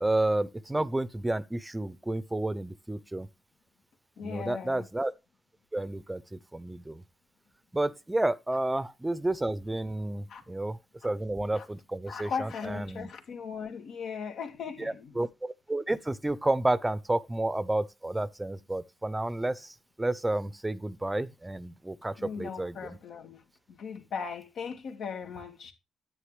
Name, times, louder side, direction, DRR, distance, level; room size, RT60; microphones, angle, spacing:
voice 1, 0.0-3.3 4.2-5.1 5.7-7.0 7.7-10.8 11.0-13.1 14.8-23.0, right 2 dB, 15° right, 0.7 m, -31 dB
voice 2, 4.2-4.9 10.3-10.4 11.6-11.7 12.1-15.2 22.2-23.4 23.7-25.7, left 6 dB, 75° left, 2.0 m, -38 dB
9.9 x 8.7 x 3.3 m
cardioid pair, 75°, 0 cm